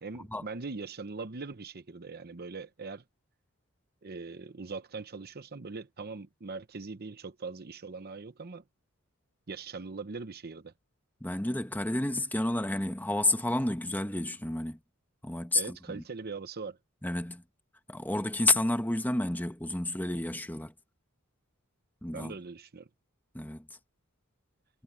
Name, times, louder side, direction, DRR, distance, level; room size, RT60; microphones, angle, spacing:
voice 1, 0.0-3.0 4.0-8.6 9.5-10.7 15.5-16.8 22.1-22.9, right 4 dB, 45° right, 0.8 m, -41 dB
voice 2, 11.2-14.8 15.2-16.0 17.0-17.4 17.9-20.7 22.0-22.3 23.3-23.7, left 2 dB, 10° left, 1.3 m, -30 dB
head